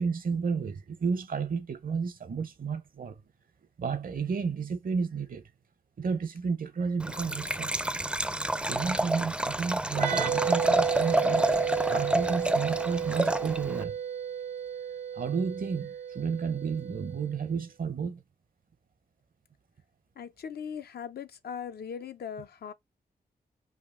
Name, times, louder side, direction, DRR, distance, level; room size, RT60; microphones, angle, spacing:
voice 1, 0.0-3.2 3.8-5.5 6.0-7.8 8.6-11.4 11.8-14.0 15.1-18.2, right 5 dB, 60° right, 0.7 m, -32 dB
Liquid, 7.0-13.8, right 1 dB, 5° right, 0.4 m, -29 dB
sound 1, 9.9-17.4, right 8 dB, 85° right, 0.8 m, -33 dB
voice 2, 20.2-22.7, left 7 dB, 75° left, 0.5 m, -39 dB
3.5 x 2.4 x 3.6 m
cardioid pair, 55°, 17 cm